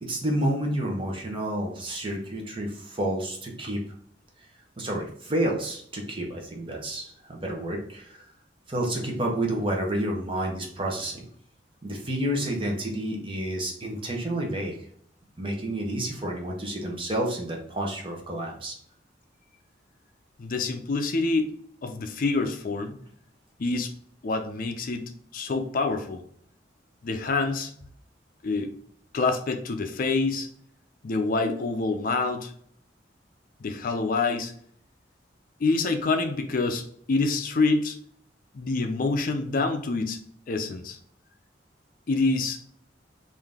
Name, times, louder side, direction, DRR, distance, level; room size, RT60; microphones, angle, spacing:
voice 1, 0.0-3.8 4.8-8.2 8.7-11.2 11.8-14.8 15.4-18.8, right 1 dB, 30° right, 0 dB, 0.9 m, -30 dB
voice 2, 20.4-21.5 21.8-23.0 23.6-23.9 24.2-26.2 27.0-27.7 28.4-28.7 29.1-30.5 31.0-32.5 33.6-34.5 35.6-38.0 38.5-40.2 40.5-41.0 42.1-42.6, left 3 dB, 50° left, 6 dB, 0.4 m, -26 dB
3.7 x 2.6 x 3.4 m, 0.63 s
head